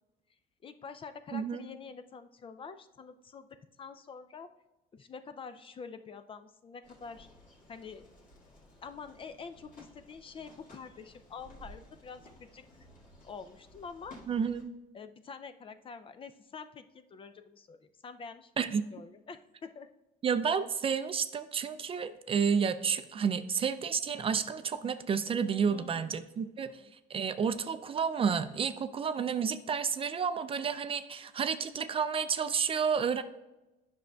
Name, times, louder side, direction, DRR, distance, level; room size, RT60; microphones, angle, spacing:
voice 1, 0.6-4.5 4.9-7.3 7.7-8.1 8.8-12.7 13.2-14.2 14.9-18.5 18.9-19.9 25.7-26.1 26.8-26.9, left 5 dB, 30° left, 10 dB, 0.4 m, -47 dB
sound 1, 6.8-14.6, left 1 dB, 50° left, 1.8 m, -56 dB
voice 2, 14.3-14.7 18.6-18.8 20.2-26.7 27.1-33.2, right 6 dB, 35° right, 11 dB, 0.4 m, -30 dB
9.3 x 6.1 x 2.3 m, 1.0 s
cardioid pair, 110°, 17 cm